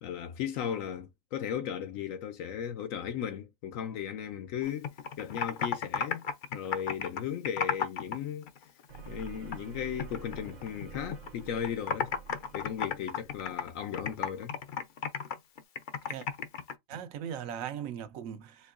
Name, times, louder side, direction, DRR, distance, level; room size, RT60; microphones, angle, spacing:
voice 1, 0.0-4.9 5.2-6.2 6.5-8.5 9.1-12.1 12.5-14.6, left 9 dB, 80° left, 1.0 m, -36 dB
Computer keyboard, 4.6-8.2 8.5-9.7 10.0-11.3 11.6-16.7, left 6 dB, 60° left, 0.5 m, -34 dB
sound 1, 8.9-14.2, right 8 dB, 50° right, 0.5 m, -48 dB
voice 2, 16.9-18.7, right 9 dB, 85° right, 1.0 m, -39 dB
4.5 x 2.8 x 2.4 m
omnidirectional pair, 1.4 m